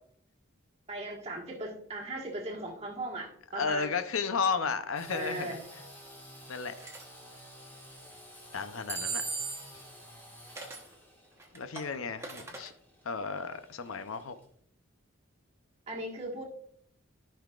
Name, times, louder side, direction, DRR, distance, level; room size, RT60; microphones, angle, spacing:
voice 1, 0.9-4.0 5.1-5.6 15.9-16.4, right 2 dB, 30° right, 1.6 m, -38 dB
voice 2, 3.5-5.6 6.5-6.8 8.5-9.3 11.5-12.7 13.0-14.4, left 5 dB, 85° left, 0.7 m, -33 dB
Engine / Sawing, 4.9-14.4, equal, 10° left, 2.0 m, -52 dB
sound 1, 6.8-7.0 8.9-9.8 10.6-10.9 11.4-12.7, right 4 dB, 15° right, 1.0 m, -37 dB
13.5 x 5.6 x 2.4 m
head